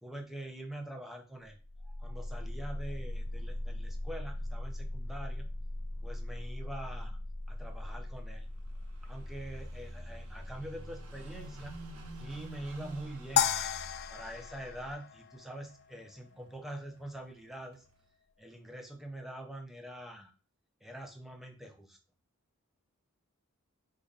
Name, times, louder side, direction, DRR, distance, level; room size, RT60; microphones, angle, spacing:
voice 1, 0.0-1.6 1.8-5.5 6.0-7.2 7.5-8.5 9.0-11.8 12.2-13.6 14.1-17.8 18.4-20.3 20.8-22.0, right 1 dB, ahead, 3 dB, 0.6 m, -44 dB
sound 1, 1.6-14.9, left 1 dB, 60° left, 1.2 m, -41 dB
Car passing by / Idling, 7.5-18.1, right 2 dB, 75° right, 0.8 m, -52 dB
sound 2, 13.4-15.7, left 9 dB, 45° left, 0.3 m, -32 dB
5.4 x 2.5 x 3.5 m, 0.35 s
head